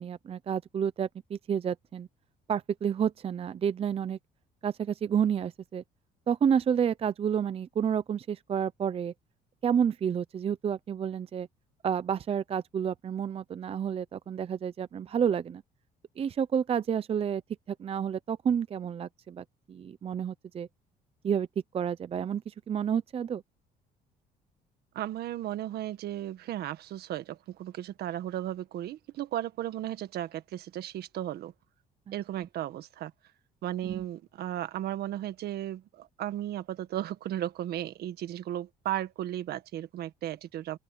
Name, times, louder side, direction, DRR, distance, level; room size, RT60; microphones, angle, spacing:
voice 1, 0.0-2.1 2.5-4.2 4.6-5.8 6.3-9.1 9.6-11.5 11.8-15.6 16.2-17.4 17.8-20.7 21.2-21.5 21.7-23.4 33.9-34.0, right 8 dB, 35° right, 0.6 m, -30 dB
voice 2, 24.9-31.5 32.1-33.1 33.6-40.8, right 12 dB, 70° right, 1.7 m, -35 dB
open air
cardioid pair, 110°, 17 cm